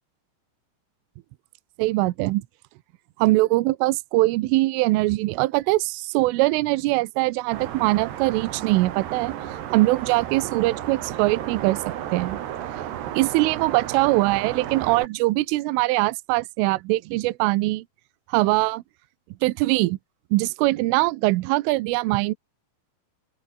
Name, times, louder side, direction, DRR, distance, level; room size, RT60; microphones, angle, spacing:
voice 1, 1.8-2.4 3.2-9.4 9.7-12.4 13.1-17.8 18.3-18.8 19.4-20.0 20.3-22.3, right 20 dB, 80° right, 3.3 m, -22 dB
sound 1, 7.5-15.1, right 11 dB, 60° right, 3.7 m, -33 dB
open air
omnidirectional pair, 5.9 m